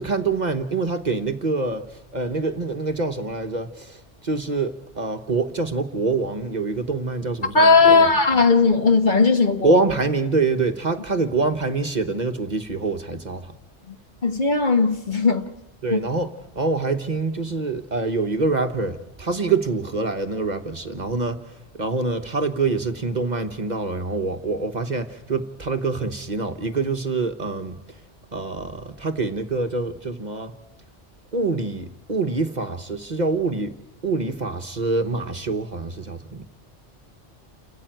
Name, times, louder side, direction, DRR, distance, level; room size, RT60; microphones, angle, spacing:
voice 1, 0.0-8.1 9.6-13.5 15.8-27.8 28.3-30.5 31.3-33.7 34.0-36.4, right 3 dB, 40° right, 1.2 m, -25 dB
voice 2, 7.5-9.8 14.2-15.5 15.9-16.0, left 4 dB, 45° left, 1.3 m, -17 dB
29.0 x 15.0 x 9.0 m
omnidirectional pair, 1.2 m